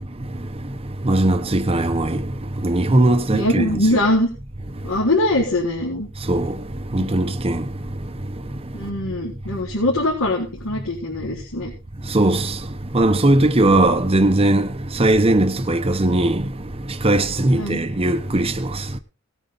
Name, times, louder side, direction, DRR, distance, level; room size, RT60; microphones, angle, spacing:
voice 1, 1.1-2.2 2.6-3.6 6.3-6.5 6.9-7.6 12.1-12.4 12.9-14.7 15.0-16.4 17.0-18.5, right 1 dB, 30° right, 0.9 m, -18 dB
voice 2, 3.3-4.3 4.8-6.1 8.7-11.7 17.5-17.8, left 1 dB, 75° left, 4.0 m, -22 dB
18.5 x 9.1 x 4.0 m
head